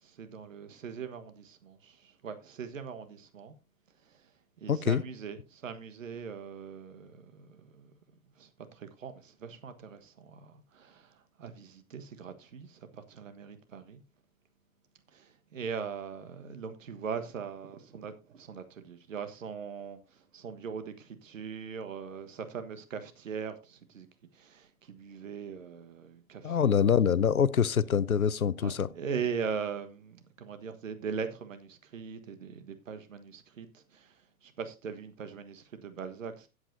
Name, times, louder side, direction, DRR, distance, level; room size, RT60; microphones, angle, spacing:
voice 1, 0.0-3.5 4.0-4.3 4.6-7.9 8.4-14.0 15.1-24.1 24.3-26.7 28.6-36.5, right 6 dB, 65° right, 1.4 m, -41 dB
voice 2, 4.7-5.0 26.4-28.9, left 7 dB, 80° left, 0.7 m, -25 dB
16.0 x 8.0 x 2.7 m
figure-of-eight pair, 100°, 42 cm